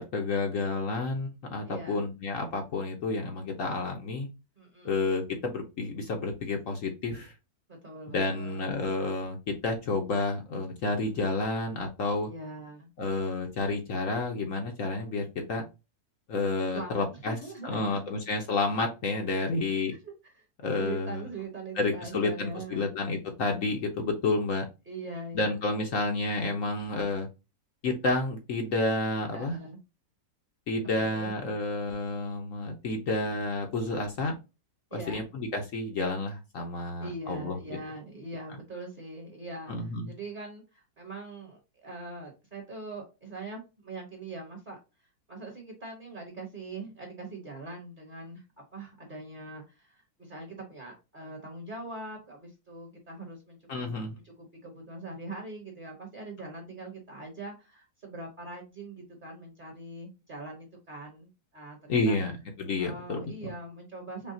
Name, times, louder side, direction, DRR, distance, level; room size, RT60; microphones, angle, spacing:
voice 1, 0.1-4.3 4.8-7.3 8.1-12.3 13.0-15.6 16.3-17.4 17.6-19.9 20.6-21.2 21.8-24.6 25.3-27.3 27.8-29.6 30.7-34.4 34.9-37.8 39.7-40.1 53.7-54.1 61.9-62.3 62.6-63.5, left 3 dB, 60° left, 3 dB, 1.1 m, -30 dB
voice 2, 1.6-2.0 4.6-5.0 7.8-8.7 12.2-12.9 16.7-18.2 19.4-19.5 19.9-20.4 20.8-22.9 24.9-25.6 29.3-29.8 30.9-31.3 34.9-35.2 37.0-44.8 45.3-48.4 48.7-62.2 62.8-64.3, right 2 dB, 30° right, 0 dB, 1.3 m, -42 dB
5.6 x 2.3 x 2.6 m, 0.27 s
omnidirectional pair, 1.8 m